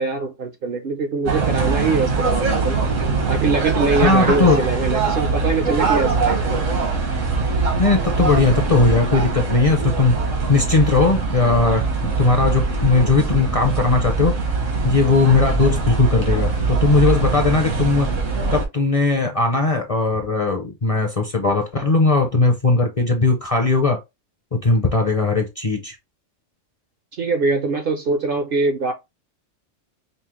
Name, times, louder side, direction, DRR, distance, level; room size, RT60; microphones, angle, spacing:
voice 1, 0.0-2.8 3.3-6.6 27.1-28.9, right 3 dB, 55° right, 0.6 m, -23 dB
sound 1, 1.3-18.7, right 4 dB, 80° right, 1.5 m, -22 dB
voice 2, 4.0-4.6 7.8-10.1 10.5-11.9 12.2-14.4 14.8-18.1 18.5-24.0 24.5-25.9, left 3 dB, 35° left, 0.6 m, -18 dB
5.4 x 2.0 x 3.0 m
omnidirectional pair, 1.3 m